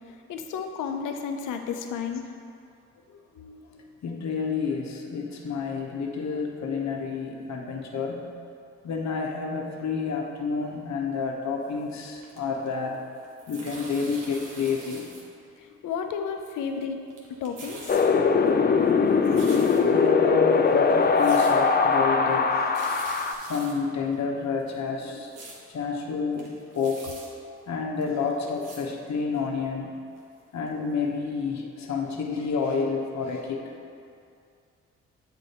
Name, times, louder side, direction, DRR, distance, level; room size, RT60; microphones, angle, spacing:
voice 1, 0.1-2.2 11.6-11.7 15.8-17.0 17.4-18.0, left 6 dB, 75° left, 5 dB, 0.6 m, -32 dB
voice 2, 3.4-8.2 8.8-13.0 13.5-15.0 19.3-19.4 19.9-22.6 23.5-25.3 25.7-26.5 26.7-27.1 27.7-30.0 30.5-33.7, left 5 dB, 60° left, 1 dB, 0.9 m, -29 dB
sound 1, 11.7-12.9 13.2-15.2 15.5-15.6 16.3-16.8 17.1-18.1 18.5-20.0 20.5-20.6 20.9-21.5 21.8-22.0 22.3-22.4 22.6-23.7 24.1-24.2 24.6-25.6 26.0-26.1 26.3-27.3 28.0-28.1 28.4-28.8 29.3-29.4 30.2-30.3 30.7-30.8 31.0-31.1, right 3 dB, 85° right, 1.1 m, -44 dB
Wind, 17.9-23.3, left 5 dB, 30° left, 0.5 m, -21 dB
7.7 x 4.4 x 4.2 m, 2.4 s
supercardioid pair, 50°, 31 cm